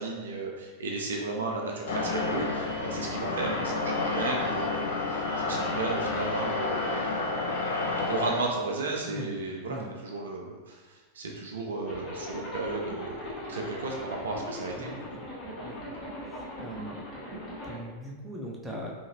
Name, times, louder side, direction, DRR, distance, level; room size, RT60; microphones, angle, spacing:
voice 1, 0.0-7.0 8.1-9.8 10.0-14.9, right 3 dB, 65° right, 0 dB, 0.4 m, -34 dB
sound 1, 1.9-8.4, left 3 dB, 60° left, 0.4 m, -30 dB
Zipper (clothing), 11.9-17.8, left 1 dB, 35° left, 1.2 m, -40 dB
voice 2, 14.8-15.3 15.6-15.8 16.3-17.0 17.3-17.4 17.6-18.9, equal, 10° right, -2 dB, 0.5 m, -40 dB
2.7 x 2.5 x 2.9 m, 1.3 s
figure-of-eight pair, 90°, 0 cm